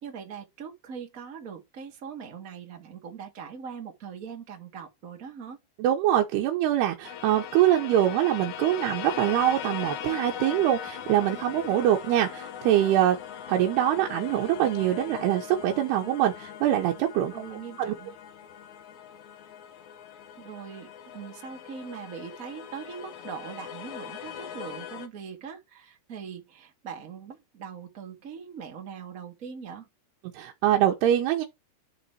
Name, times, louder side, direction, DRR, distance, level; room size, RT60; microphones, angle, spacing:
voice 1, 0.0-5.6 17.3-18.1 20.4-29.9, right 6 dB, 40° right, 1.1 m, -41 dB
voice 2, 5.8-13.2 13.5-17.3 17.8-17.9 30.3-31.5, right 12 dB, 85° right, 3.0 m, -24 dB
sound 1, 7.0-25.1, left 9 dB, 75° left, 1.8 m, -40 dB
11.0 x 4.0 x 4.4 m
omnidirectional pair, 4.6 m